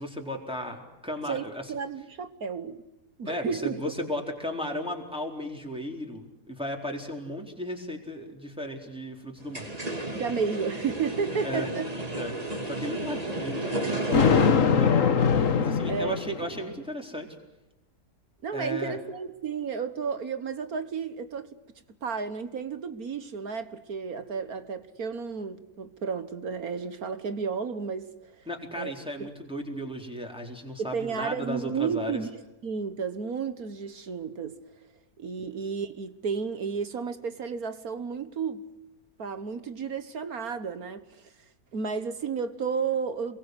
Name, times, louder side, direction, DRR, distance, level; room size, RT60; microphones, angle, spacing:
voice 1, 0.0-1.7 3.2-9.7 11.4-11.7 12.1-12.4 12.7-17.3 18.5-19.0 28.5-32.2, equal, 5° right, 4.1 m, -35 dB
voice 2, 1.3-2.8 3.2-3.8 10.1-11.9 15.9-16.3 18.4-21.5 22.0-28.3 28.8-28.9 29.2-29.3 30.8-32.3 32.6-34.6 35.2-38.6 39.2-41.0 41.7-43.4, right 6 dB, 60° right, 1.8 m, -32 dB
sound 1, 9.4-14.5, right 1 dB, 20° right, 3.0 m, -32 dB
Thunder, 14.1-16.6, left 6 dB, 55° left, 1.5 m, -22 dB
28.5 x 23.0 x 8.0 m
omnidirectional pair, 1.8 m